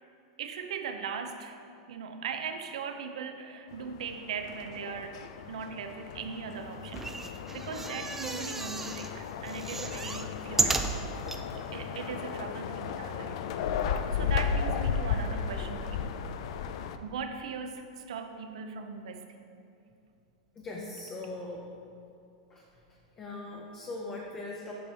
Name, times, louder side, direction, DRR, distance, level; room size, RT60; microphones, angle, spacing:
voice 1, 0.4-1.6 1.9-11.1 11.5-13.4 13.9-16.2 17.0-19.3, right 6 dB, 80° right, 7 dB, 0.6 m, -39 dB
sound 1, 3.7-17.0, left 7 dB, 65° left, 0.4 m, -35 dB
sound 2, 6.9-9.1 9.5-11.4 12.0-12.1 12.3-12.4, right 3 dB, 10° right, 0.4 m, -33 dB
voice 2, 20.6-21.7 22.5-22.6 23.2-24.7, left 2 dB, 25° left, -2 dB, 0.8 m, -40 dB
7.6 x 5.4 x 3.4 m, 2.6 s
hypercardioid pair, 125°, 3 cm